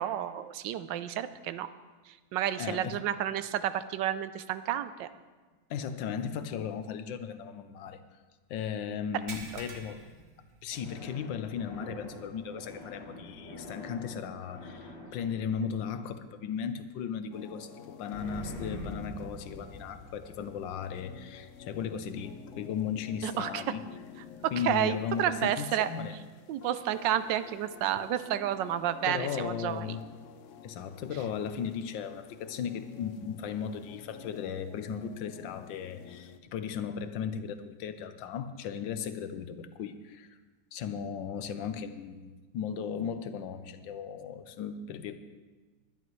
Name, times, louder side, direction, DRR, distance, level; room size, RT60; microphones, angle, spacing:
voice 1, 0.0-1.7 2.1-5.1 23.2-23.6 24.4-25.9 26.5-30.0, right 11 dB, 75° right, 13 dB, 1.3 m, -31 dB
voice 2, 2.6-3.0 5.7-8.0 8.5-10.0 10.6-23.8 24.5-26.2 29.1-30.1 30.6-40.4 40.7-45.2, left 7 dB, 85° left, 10 dB, 1.4 m, -36 dB
sound 1, 9.3-11.2 11.5-11.7 12.2-12.3 13.9-14.0, right 3 dB, 45° right, 1.4 m, -46 dB
sound 2, 10.7-16.7 18.1-23.4, left 1 dB, 35° left, 2.6 m, -46 dB
sound 3, 17.3-36.4, left 6 dB, 65° left, 0.8 m, -50 dB
20.5 x 11.0 x 3.1 m, 1.3 s
omnidirectional pair, 2.0 m